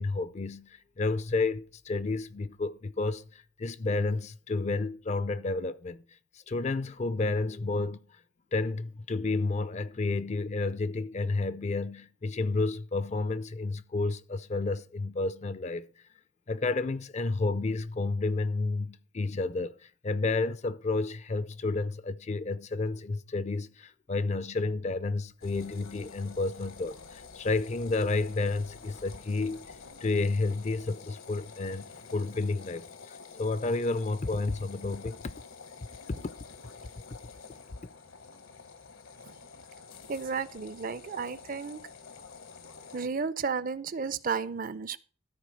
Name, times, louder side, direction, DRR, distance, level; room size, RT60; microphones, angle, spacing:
voice 1, 0.0-6.0 6.5-8.0 8.5-15.9 16.5-29.8 30.0-35.3 36.1-36.3, left 3 dB, 30° left, 0.4 m, -31 dB
sound 1, 25.4-43.1, left 5 dB, 70° left, 1.1 m, -49 dB
voice 2, 40.1-41.8 42.9-45.0, right 5 dB, 40° right, 0.5 m, -33 dB
13.5 x 4.6 x 6.3 m
head